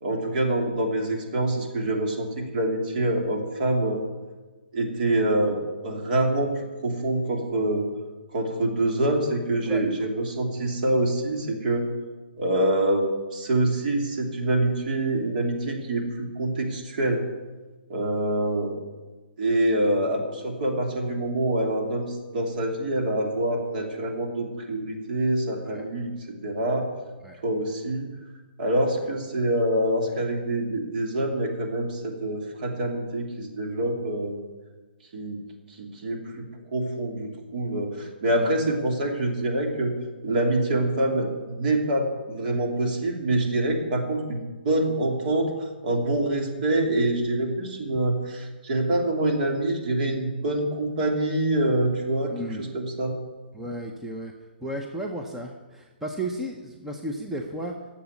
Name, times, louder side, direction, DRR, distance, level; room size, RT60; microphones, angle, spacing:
voice 1, 0.0-4.0 4.7-5.6 5.8-7.9 8.3-11.9 12.4-17.2 17.9-18.8 19.4-26.1 26.4-26.8 27.4-28.1 28.6-34.4 35.1-35.4 35.7-39.9 40.2-53.1, right 1 dB, 50° right, 1 dB, 2.9 m, -26 dB
voice 2, 52.3-52.6 53.5-54.3 54.6-57.8, right 1 dB, 5° right, 1 dB, 0.8 m, -34 dB
11.5 x 7.5 x 9.4 m, 1.3 s
hypercardioid pair, 150°, 6 cm